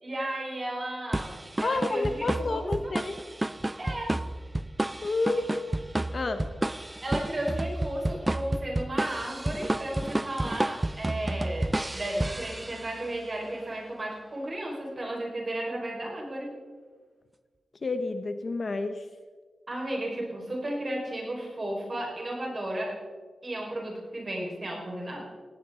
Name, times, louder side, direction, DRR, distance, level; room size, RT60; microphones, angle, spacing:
voice 1, 0.0-2.9 3.8-4.2 5.3-5.5 7.0-16.6 19.7-23.0 23.4-25.2, right 1 dB, 30° right, -1 dB, 4.8 m, -34 dB
sound 1, 1.1-13.1, right 1 dB, 15° right, 0.4 m, -31 dB
voice 2, 1.6-3.2 5.0-5.4 6.1-6.5 17.8-19.0, left 3 dB, 40° left, 8 dB, 0.9 m, -29 dB
18.5 x 17.5 x 3.8 m, 1.5 s
wide cardioid pair, 145°, 0 cm